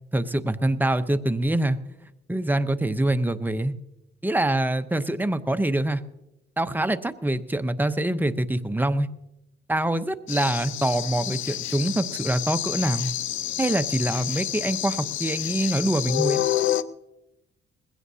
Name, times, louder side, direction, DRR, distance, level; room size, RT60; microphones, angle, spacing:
voice 1, 0.1-1.8 2.3-3.7 4.2-6.0 6.6-9.1 9.7-13.1 13.6-16.4, right 1 dB, 10° right, 10 dB, 0.7 m, -25 dB
sound 1, 10.3-16.8, left 12 dB, 75° left, 0.5 m, -29 dB
20.5 x 16.0 x 2.8 m, 0.92 s
cardioid pair, 90°, 20 cm